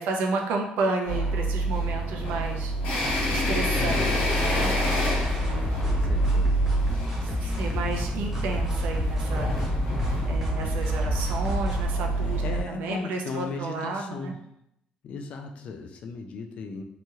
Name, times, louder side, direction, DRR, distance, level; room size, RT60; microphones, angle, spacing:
voice 1, 0.0-2.7 3.3-4.7 5.4-6.1 7.2-9.5 10.2-12.4 12.7-14.4, right 3 dB, 80° right, 2 dB, 0.5 m, -32 dB
sound 1, 1.1-12.6, right 1 dB, 75° left, 1.0 m, -27 dB
voice 2, 3.8-4.2 5.9-6.6 12.2-14.4 15.0-16.8, left 4 dB, 45° left, 4 dB, 0.3 m, -36 dB
sound 2, 5.2-11.9, left 2 dB, 15° right, 0.7 m, -31 dB
2.9 x 2.8 x 2.3 m, 0.77 s
cardioid pair, 175°, 3 cm